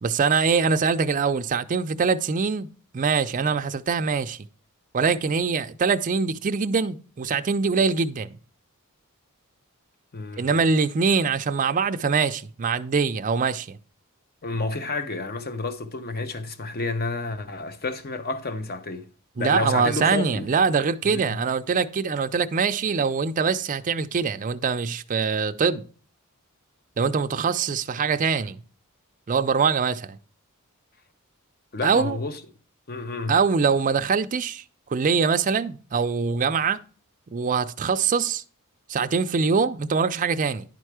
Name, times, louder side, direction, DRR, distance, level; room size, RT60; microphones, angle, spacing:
voice 1, 0.0-2.7 2.9-4.4 4.9-8.4 10.4-13.8 19.4-25.8 27.0-28.6 29.3-30.2 31.8-32.2 33.3-34.6 34.9-36.8 37.3-38.4 38.9-40.7, right 5 dB, 35° right, 0.4 m, -23 dB
voice 2, 10.1-10.7 14.4-19.1 19.4-20.5 21.0-21.4 31.7-32.4 32.9-33.4, left 3 dB, 45° left, 0.9 m, -30 dB
10.5 x 4.4 x 4.8 m
head